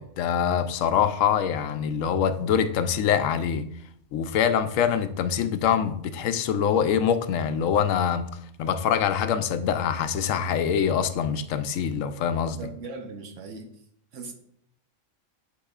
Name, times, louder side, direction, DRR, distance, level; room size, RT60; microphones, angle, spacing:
voice 1, 0.0-3.6 4.1-8.3 8.6-12.6, left 8 dB, 85° left, 10 dB, 1.0 m, -24 dB
voice 2, 12.6-13.7 14.1-14.3, right 3 dB, 75° right, 5 dB, 1.1 m, -38 dB
9.8 x 4.8 x 2.4 m, 0.68 s
omnidirectional pair, 1.3 m